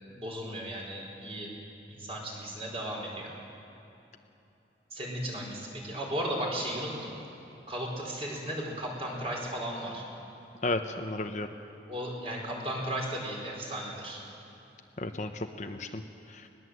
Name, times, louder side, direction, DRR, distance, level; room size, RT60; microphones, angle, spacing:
voice 1, 0.1-1.5 1.9-3.3 4.9-7.1 7.7-10.0 11.9-14.2, equal, 30° right, -2 dB, 4.5 m, -35 dB
voice 2, 10.6-11.5 15.0-16.0 16.3-16.5, left 2 dB, 40° left, 6 dB, 0.8 m, -33 dB
20.5 x 19.5 x 7.9 m, 2.9 s
head